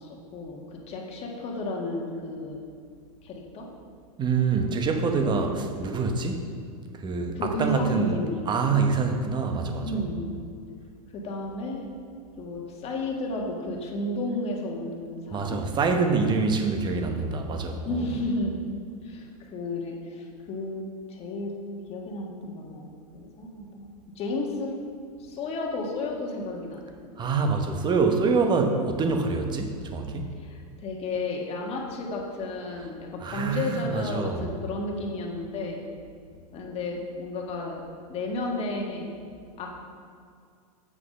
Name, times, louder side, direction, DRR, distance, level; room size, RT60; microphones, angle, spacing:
voice 1, 0.0-2.6 3.2-3.7 5.2-5.8 7.3-8.5 9.8-10.4 11.1-11.9 12.4-15.6 17.8-18.6 19.0-21.5 21.9-23.9 24.1-24.7 25.2-26.9 30.4-35.9 36.5-37.8 38.1-39.1 39.6-39.8, left 2 dB, 30° left, 0 dB, 1.5 m, -32 dB
voice 2, 4.2-6.4 6.9-8.2 8.5-10.0 15.3-18.0 27.2-30.3 33.2-34.4, right 4 dB, 25° right, 5 dB, 0.9 m, -25 dB
8.0 x 6.0 x 5.4 m, 2.2 s
hypercardioid pair, 120°, 19 cm